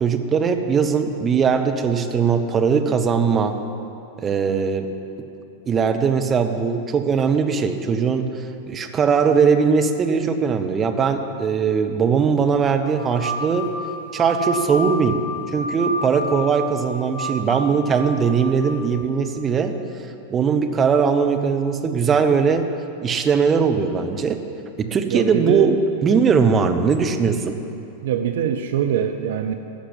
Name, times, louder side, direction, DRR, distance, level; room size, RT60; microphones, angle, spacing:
voice 1, 0.0-3.6 4.2-4.9 5.7-13.7 14.1-15.2 15.5-19.7 20.3-22.7 23.0-24.4 24.8-27.6, right 6 dB, 25° right, 6 dB, 0.9 m, -20 dB
sound 1, 12.8-18.8, equal, 80° right, 1.6 m, -30 dB
voice 2, 25.1-25.8 28.0-29.5, right 9 dB, 55° right, 7 dB, 0.6 m, -23 dB
13.5 x 6.6 x 9.3 m, 2.8 s
figure-of-eight pair, 90°, 0 cm